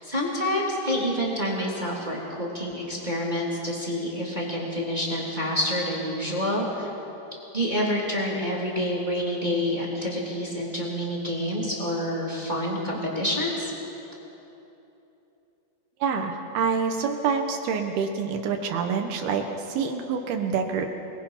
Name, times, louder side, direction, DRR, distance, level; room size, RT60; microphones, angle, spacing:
voice 1, 0.0-6.9 7.5-13.7, equal, 10° right, -3 dB, 2.3 m, -28 dB
voice 2, 16.0-20.9, right 6 dB, 70° right, 4 dB, 2.6 m, -27 dB
26.5 x 22.0 x 5.7 m, 3.0 s
omnidirectional pair, 5.6 m